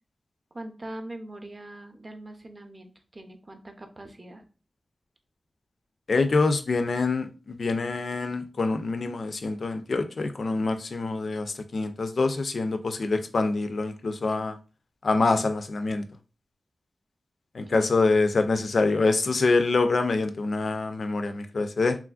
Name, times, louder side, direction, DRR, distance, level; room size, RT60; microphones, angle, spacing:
voice 1, 0.5-4.4 17.6-17.8, right 1 dB, 30° right, 0.5 m, -41 dB
voice 2, 6.1-14.6 15.0-16.0 17.5-22.0, left 3 dB, 65° left, 0.3 m, -25 dB
2.9 x 2.4 x 2.3 m
wide cardioid pair, 90°, 0 cm